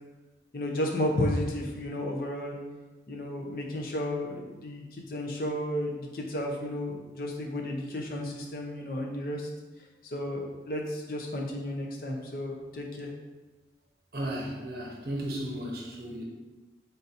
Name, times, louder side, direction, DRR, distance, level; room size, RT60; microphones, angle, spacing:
voice 1, 0.5-2.6 3.1-9.5 10.0-13.1, left 1 dB, 55° left, 0 dB, 0.7 m, -33 dB
voice 2, 14.1-16.2, right 1 dB, 55° right, -2 dB, 0.7 m, -35 dB
3.8 x 2.7 x 4.1 m, 1.2 s
head